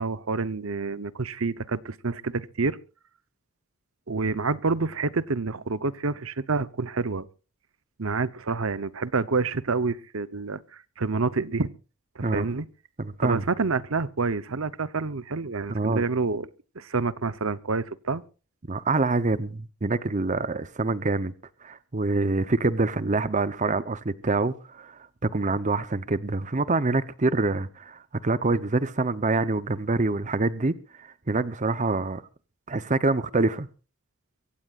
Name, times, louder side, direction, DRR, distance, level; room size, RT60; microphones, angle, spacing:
voice 1, 0.0-2.8 4.1-7.3 8.0-11.7 12.2-12.7 13.2-16.5 16.8-18.2, right 4 dB, 70° right, 0.9 m, -28 dB
voice 2, 13.0-13.4 15.7-16.0 18.7-21.3 21.6-32.2 32.7-33.7, right 3 dB, 35° right, 0.8 m, -26 dB
24.0 x 16.5 x 2.5 m
head